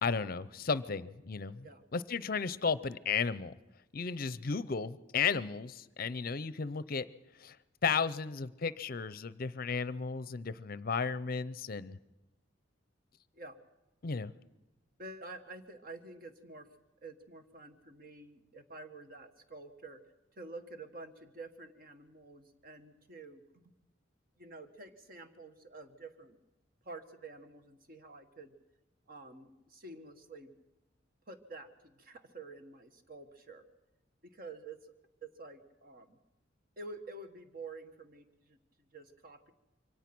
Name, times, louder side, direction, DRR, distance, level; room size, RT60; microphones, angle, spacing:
voice 1, 0.0-1.7 1.9-3.5 3.9-7.1 7.4-7.6 7.8-12.0 14.0-14.3, left 5 dB, 50° left, 17 dB, 0.6 m, -34 dB
voice 2, 15.0-16.7 17.0-20.0 20.3-23.7 24.4-26.4 26.8-28.5 29.1-30.5 31.3-33.6 34.2-35.0 35.2-36.2 36.8-39.5, right 3 dB, 50° right, 7 dB, 1.6 m, -49 dB
24.0 x 18.0 x 6.1 m, 1.0 s
head